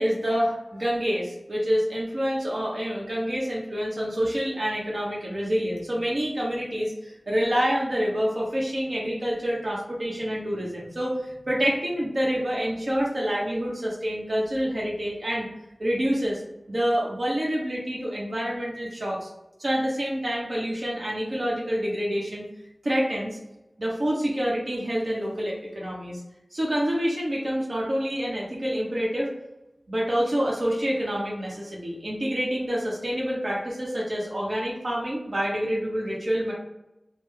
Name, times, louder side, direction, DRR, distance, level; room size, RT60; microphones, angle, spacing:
voice 1, 0.0-15.5 15.8-16.4 16.7-19.3 19.6-22.4 22.8-23.4 23.8-26.2 26.5-29.3 29.9-36.5, equal, 65° right, -4 dB, 1.1 m, -27 dB
3.3 x 2.2 x 3.4 m, 0.91 s
wide cardioid pair, 50°, 0 cm